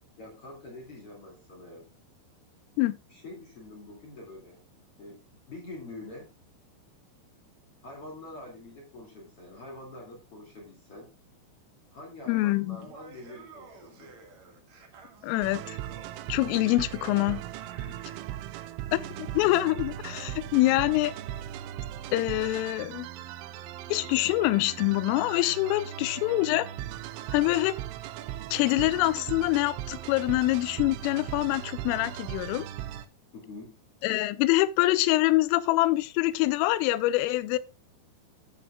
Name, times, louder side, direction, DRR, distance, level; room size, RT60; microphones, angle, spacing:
voice 1, 0.2-1.9 3.1-4.6 5.0-6.3 7.8-11.1 11.9-14.2 17.9-18.1 33.3-33.8, left 2 dB, 40° left, 2.3 m, -45 dB
voice 2, 12.3-12.8 15.2-15.8 16.3-17.4 18.9-21.1 22.1-23.1 23.9-26.7 27.3-27.8 28.5-32.7 34.0-37.6, left 18 dB, 85° left, 3.2 m, -25 dB
Laughter, 12.7-18.3, right 4 dB, 55° right, 2.1 m, -51 dB
sound 1, 15.4-33.1, right 12 dB, 85° right, 3.1 m, -38 dB
14.5 x 7.8 x 2.3 m
omnidirectional pair, 5.7 m